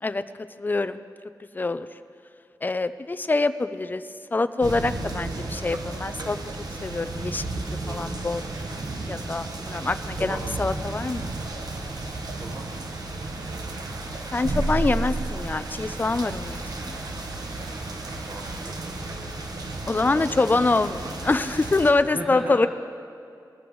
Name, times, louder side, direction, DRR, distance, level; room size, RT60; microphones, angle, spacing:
voice 1, 0.6-1.0 1.5-1.9 2.6-4.0 4.3-6.4 6.8-7.5 7.9-8.4 9.1-11.3 14.3-16.6 16.8-17.0 19.9-22.7, left 3 dB, 25° left, 11 dB, 0.4 m, -25 dB
sound 1, 4.6-21.9, right 2 dB, 65° right, 1.2 m, -33 dB
voice 2, 7.8-8.1 10.2-10.4 12.4-12.7 13.6-13.9 18.3-19.2 19.9-20.7 22.0-22.7, right 2 dB, 45° right, -1 dB, 1.4 m, -38 dB
21.5 x 14.5 x 3.2 m, 2.5 s
wide cardioid pair, 135°, 7 cm